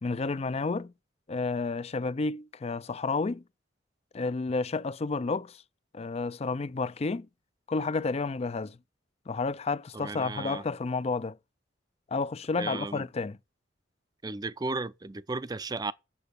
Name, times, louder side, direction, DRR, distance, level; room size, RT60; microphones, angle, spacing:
voice 1, 0.0-0.9 1.3-3.4 4.1-5.6 5.9-7.3 7.7-8.8 9.3-11.4 12.1-13.4, left 3 dB, 35° left, 0.4 m, -31 dB
voice 2, 9.9-10.6 12.6-13.1 14.2-15.9, right 3 dB, 20° right, 0.5 m, -34 dB
8.5 x 6.7 x 6.7 m
head